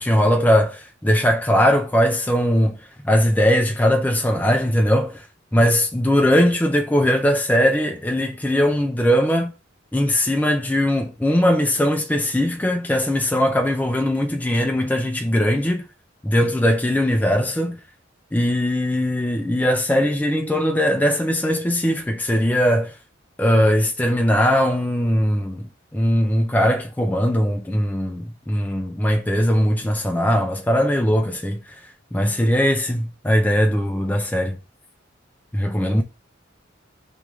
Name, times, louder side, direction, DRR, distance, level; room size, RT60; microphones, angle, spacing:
voice 1, 0.0-2.8 3.0-5.3 5.5-9.5 9.9-15.8 16.2-17.8 18.3-22.9 23.4-34.6 35.5-36.0, equal, 10° left, 0.4 m, -20 dB
3.4 x 3.0 x 4.5 m
head